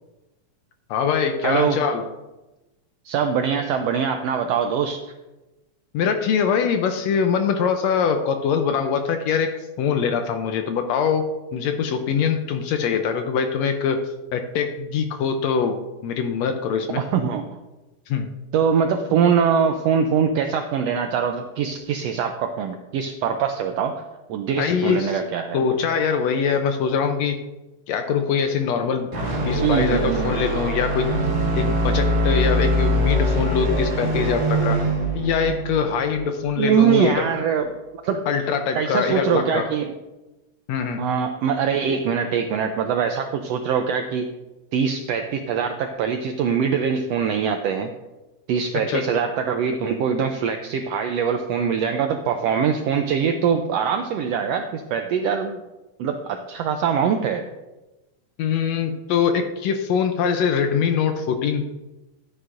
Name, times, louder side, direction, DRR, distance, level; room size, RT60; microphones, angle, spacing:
voice 1, 0.9-2.1 5.9-17.0 18.1-18.3 24.6-25.2 25.5-27.4 27.9-29.1 29.5-31.1 31.5-34.8 35.1-37.2 38.3-39.7 40.7-41.0 48.7-49.1 58.4-61.6, left 6 dB, 75° left, 7 dB, 1.7 m, -23 dB
voice 2, 1.4-1.8 3.0-5.0 17.0-17.5 18.5-24.0 24.3-25.6 29.5-30.4 36.6-37.7 38.0-38.2 38.7-39.9 41.0-44.3 44.7-47.9 48.5-55.6 56.0-57.4, right 7 dB, 85° right, 5 dB, 1.4 m, -23 dB
sound 1, 29.1-37.3, right 1 dB, 30° right, 1.2 m, -23 dB
12.5 x 9.3 x 2.5 m, 1.0 s
omnidirectional pair, 3.5 m